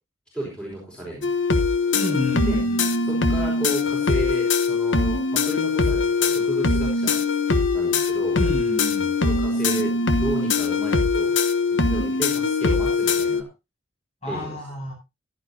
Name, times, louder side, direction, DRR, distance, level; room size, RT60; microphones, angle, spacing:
voice 1, 0.3-1.3 2.5-2.6 3.0-7.1 7.7-8.4 9.2-9.9 10.2-11.3 11.7-13.5 14.3-14.6, right 1 dB, 5° left, -4 dB, 4.5 m, -33 dB
sound 1, 1.2-13.4, left 4 dB, 80° left, 1.1 m, -22 dB
voice 2, 1.9-2.8 8.3-9.1 14.2-14.9, equal, 35° left, 0 dB, 7.9 m, -29 dB
15.0 x 12.0 x 2.7 m, 0.24 s
head